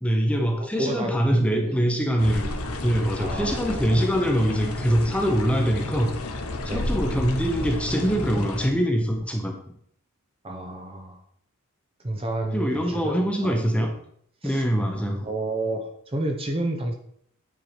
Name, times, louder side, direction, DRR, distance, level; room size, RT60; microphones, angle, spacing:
voice 1, 0.0-2.5 2.8-6.2 6.6-9.5 12.5-13.9 14.4-15.3, equal, 5° left, 2 dB, 1.1 m, -23 dB
voice 2, 0.6-1.7 3.2-4.2 6.6-6.9 10.4-11.2 12.0-13.8 14.4-14.6 15.2-16.9, right 1 dB, 25° right, 3 dB, 1.0 m, -30 dB
sound 1, 2.2-8.7, left 2 dB, 90° left, 1.1 m, -31 dB
9.2 x 4.9 x 5.1 m, 0.67 s
head